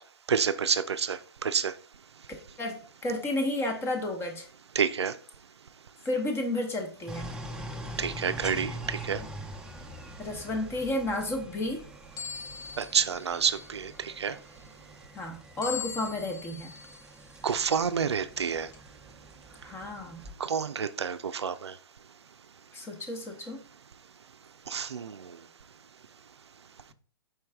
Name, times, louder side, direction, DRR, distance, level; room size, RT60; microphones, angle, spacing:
voice 1, 0.3-1.7 4.8-5.1 8.0-9.2 12.8-14.3 17.4-18.7 20.4-21.7 24.7-25.3, right 6 dB, 85° right, 0.4 m, -29 dB
voice 2, 2.6-4.5 6.0-7.3 10.2-11.8 15.1-16.8 19.6-20.3 22.7-23.6, left 1 dB, 20° left, 0.9 m, -32 dB
sound 1, 7.1-20.3, right 1 dB, 5° right, 0.5 m, -44 dB
sound 2, 12.2-13.9 15.6-17.1 17.7-17.8 18.7-18.8, left 7 dB, 45° left, 0.9 m, -41 dB
4.6 x 3.2 x 3.4 m
hypercardioid pair, 120°, 14 cm